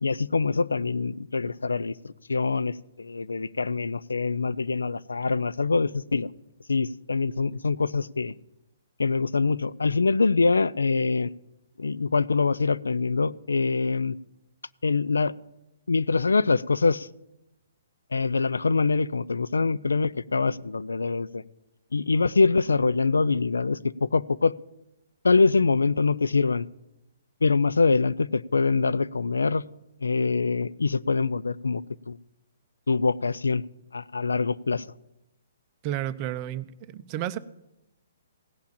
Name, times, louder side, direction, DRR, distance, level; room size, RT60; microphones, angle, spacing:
voice 1, 0.0-6.3 6.7-8.3 9.0-11.3 11.8-14.2 14.8-15.3 15.9-17.1 18.1-21.4 21.9-24.5 25.2-26.7 27.4-29.6 30.0-32.2 32.9-33.6 33.9-34.8, left 4 dB, 80° left, 19 dB, 0.4 m, -24 dB
voice 2, 35.8-37.4, right 12 dB, 35° right, 14 dB, 0.6 m, -31 dB
16.5 x 5.8 x 8.6 m, 0.90 s
figure-of-eight pair, 130°, 0 cm